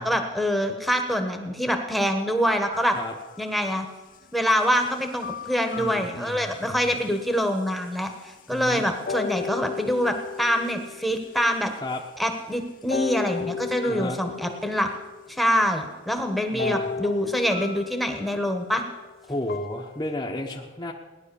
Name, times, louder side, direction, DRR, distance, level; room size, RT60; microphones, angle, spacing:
voice 1, 0.0-3.0 3.4-3.9 4.3-11.7 12.2-14.9 15.3-18.8, equal, ahead, 5 dB, 1.4 m, -25 dB
sound 1, 2.7-3.8 5.2-6.9 7.6-7.7 9.1-12.0 12.9-15.5 16.6-20.0, left 6 dB, 45° left, 0.5 m, -35 dB
voice 2, 5.8-6.9 8.5-8.9 11.8-12.0 13.9-14.2 16.5-16.9 19.3-20.9, left 1 dB, 20° left, -2 dB, 1.1 m, -33 dB
17.5 x 11.0 x 7.0 m, 1.2 s
head